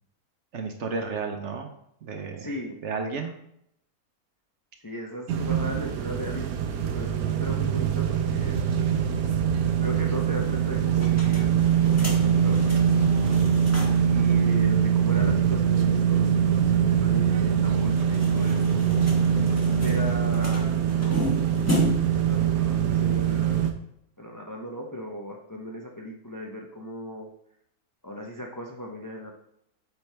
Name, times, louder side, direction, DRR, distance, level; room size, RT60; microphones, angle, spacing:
voice 1, 0.5-1.7 2.0-2.5 2.8-3.3, right 4 dB, 55° right, 5 dB, 0.9 m, -32 dB
voice 2, 2.4-2.8 4.8-6.5 6.8-8.9 9.8-11.5 11.8-12.9 14.0-18.7 19.3-23.6 24.2-27.3 28.0-29.3, equal, 30° left, 0 dB, 0.4 m, -37 dB
sound 1, 5.3-23.7, right 8 dB, 75° right, 1.2 m, -23 dB
sound 2, 10.9-14.2 14.5-14.6 14.8-14.9 17.7-22.2, right 1 dB, 10° left, 1.1 m, -33 dB
8.1 x 4.5 x 3.4 m, 0.74 s
omnidirectional pair, 1.6 m